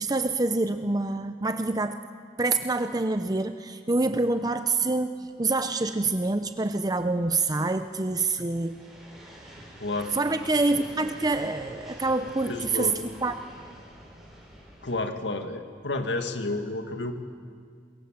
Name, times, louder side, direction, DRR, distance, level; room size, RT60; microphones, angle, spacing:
voice 1, 0.0-2.0 2.4-8.8 10.1-13.3, right 3 dB, 20° right, 9 dB, 0.6 m, -26 dB
sound 1, 4.7-15.0, equal, ahead, 6.3 m, -48 dB
voice 2, 9.8-10.1 12.4-13.0 14.8-17.1, left 2 dB, 75° left, 6 dB, 1.9 m, -31 dB
26.0 x 22.0 x 7.5 m, 2.1 s
head